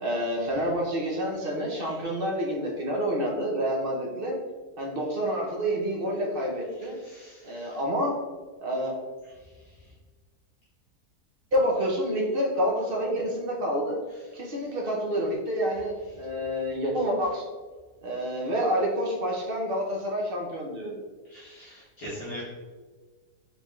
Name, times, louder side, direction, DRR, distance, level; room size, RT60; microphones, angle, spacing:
voice 1, 0.0-4.4 4.8-7.0 7.4-8.1 8.6-8.9 11.5-14.0 14.3-17.5 18.0-21.0, equal, 50° right, -1 dB, 0.7 m, -28 dB
voice 2, 7.0-7.8 21.3-22.4, equal, 65° left, -10 dB, 1.7 m, -42 dB
4.3 x 3.5 x 3.1 m, 1.4 s
omnidirectional pair, 1.7 m